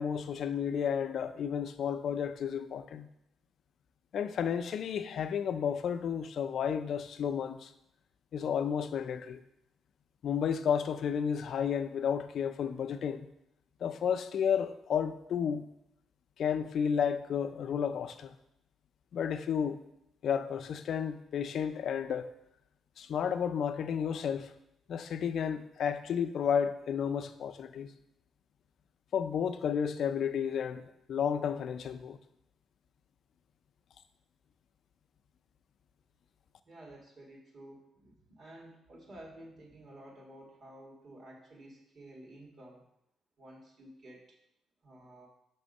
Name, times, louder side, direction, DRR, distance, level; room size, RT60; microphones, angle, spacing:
voice 1, 0.0-3.1 4.1-7.7 8.3-9.4 10.2-13.3 13.8-15.7 16.4-18.4 19.1-19.8 20.2-22.3 23.0-24.5 24.9-27.9 29.1-32.2, left 7 dB, 65° left, 0.4 m, -32 dB
voice 2, 36.6-42.8 43.4-44.4 44.8-45.3, right 1 dB, 55° right, 1.9 m, -52 dB
6.0 x 3.6 x 5.3 m
cardioid pair, 90°, 0 cm